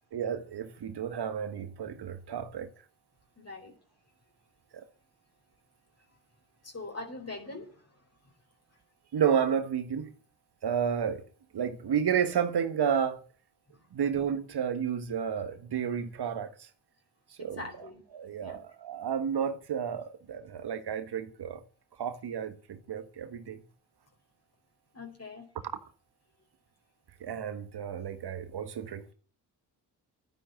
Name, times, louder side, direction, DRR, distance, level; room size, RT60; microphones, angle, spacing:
voice 1, 0.1-2.7 4.7-4.8 9.1-10.1 10.6-11.2 11.5-13.2 13.9-16.7 17.4-17.6 18.1-21.6 22.0-23.6 27.2-29.1, right 8 dB, 65° right, 1.6 m, -31 dB
voice 2, 3.4-3.8 6.6-8.3 8.7-8.8 13.7-13.9 17.4-18.0 18.4-18.6 24.9-25.5, left 2 dB, 35° left, 4.7 m, -43 dB
12.0 x 9.9 x 9.2 m
supercardioid pair, 50°, 43 cm